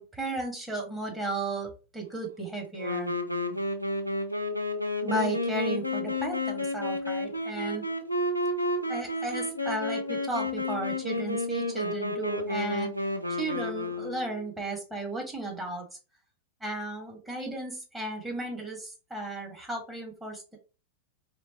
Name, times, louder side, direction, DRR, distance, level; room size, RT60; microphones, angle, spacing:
voice 1, 0.0-3.1 5.0-7.8 8.9-12.9 13.4-15.8 16.6-20.6, right 2 dB, 10° right, -1 dB, 2.0 m, -34 dB
Wind instrument woodwind instrument, 2.8-14.5, left 2 dB, 85° left, 0.7 m, -31 dB
4.4 x 3.6 x 3.0 m, 0.32 s
figure-of-eight pair, 90°, 0 cm